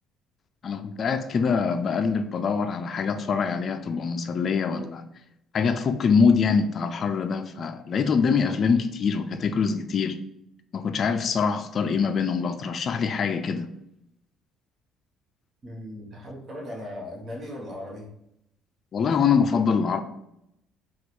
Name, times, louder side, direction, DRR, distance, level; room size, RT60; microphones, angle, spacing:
voice 1, 0.6-5.0 5.5-10.2 10.7-13.7 18.9-20.0, left 5 dB, 45° left, 0.3 m, -24 dB
voice 2, 15.6-18.1, left 1 dB, 45° right, 0.9 m, -38 dB
3.0 x 2.3 x 4.1 m
supercardioid pair, 90°, 0 cm